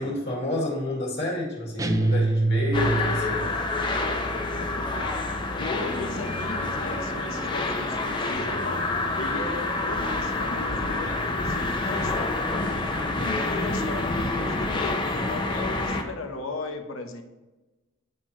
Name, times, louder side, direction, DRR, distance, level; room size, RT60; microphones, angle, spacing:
voice 1, 0.0-3.5, left 1 dB, 55° left, -3 dB, 2.0 m, -29 dB
sound 1, 1.8-3.5, right 2 dB, 15° right, 0.4 m, -24 dB
sound 2, 2.7-16.0, left 2 dB, 25° left, 0.7 m, -28 dB
voice 2, 5.0-17.2, left 3 dB, 85° left, 5 dB, 0.9 m, -37 dB
9.3 x 4.4 x 3.1 m, 1.1 s
head